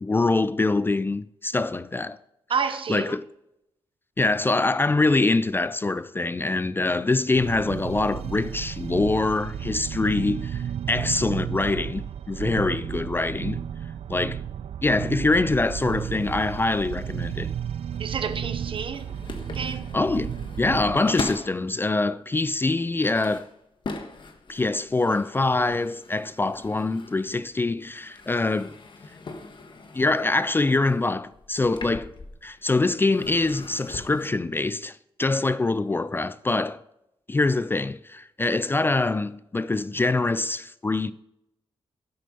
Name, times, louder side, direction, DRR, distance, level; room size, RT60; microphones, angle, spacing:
voice 1, 0.0-2.2 2.9-3.2 4.2-13.7 14.1-14.4 14.8-17.5 19.9-23.5 24.5-28.8 29.9-32.1 32.4-36.8 37.3-41.1, left 3 dB, 20° left, 0.3 m, -24 dB
voice 2, 2.5-3.1 18.0-19.1 19.5-19.8, right 6 dB, 60° right, 1.0 m, -29 dB
sound 1, 7.3-21.0, right 9 dB, 80° right, 0.4 m, -33 dB
sound 2, 17.8-21.7 22.3-27.5 27.8-32.6 33.0-34.3, left 3 dB, 50° left, 1.4 m, -40 dB
12.0 x 7.7 x 5.4 m
wide cardioid pair, 125°, 10 cm